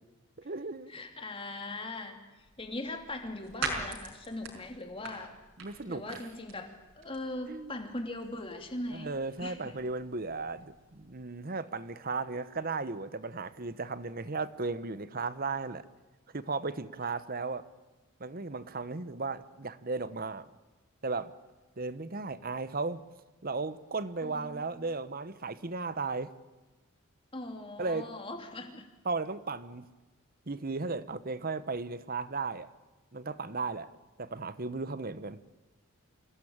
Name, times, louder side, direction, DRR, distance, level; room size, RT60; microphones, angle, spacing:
voice 1, 0.4-0.9 5.6-6.2 7.5-7.9 8.9-15.8 16.3-17.6 18.2-20.5 21.0-21.3 21.8-23.0 23.4-26.3 27.8-28.1 29.0-29.9 30.5-32.7 33.1-33.9 34.2-35.5, right 3 dB, 40° right, 14 dB, 1.0 m, -35 dB
voice 2, 0.9-5.3 5.9-9.1 9.4-9.8 24.2-24.9 27.3-28.9, left 2 dB, 25° left, 4 dB, 2.9 m, -40 dB
sound 1, 2.4-11.1, right 4 dB, 60° right, 5.4 m, -44 dB
26.5 x 17.0 x 8.8 m, 1.2 s
head